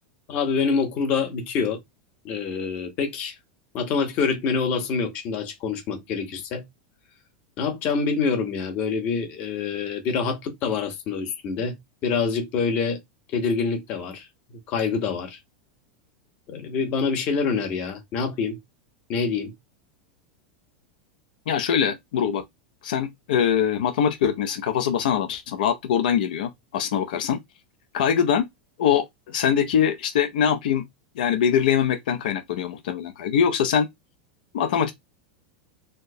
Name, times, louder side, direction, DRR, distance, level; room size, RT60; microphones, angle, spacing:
voice 1, 0.3-1.8 2.2-3.3 3.7-6.6 7.6-11.8 12.0-13.0 13.3-15.4 16.5-18.6 19.1-19.5, left 5 dB, 30° left, 0.8 m, -26 dB
voice 2, 21.5-22.4 22.8-27.4 27.9-28.5 28.8-30.8 31.2-33.9 34.5-34.9, left 8 dB, 75° left, 0.5 m, -23 dB
4.3 x 2.0 x 2.6 m
supercardioid pair, 180°, 5 cm